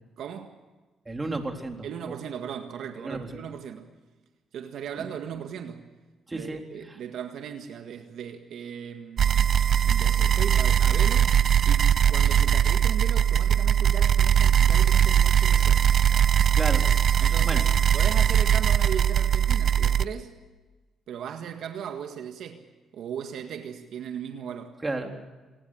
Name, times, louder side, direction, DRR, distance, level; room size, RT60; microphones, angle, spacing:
voice 1, 0.2-0.5 1.8-3.9 4.5-5.8 6.3-9.5 9.8-11.4 11.7-15.8 17.2-17.7 17.9-20.3 21.1-22.6 22.9-24.8, right 8 dB, 75° right, 1.7 m, -37 dB
voice 2, 1.1-2.2 3.0-3.4 6.3-7.0 16.6-16.9 17.2-17.6 24.8-25.1, right 2 dB, 20° right, 3.8 m, -33 dB
sound 1, 9.2-20.1, right 9 dB, 60° right, 0.6 m, -20 dB
27.0 x 19.0 x 6.4 m
cardioid pair, 90°, 0 cm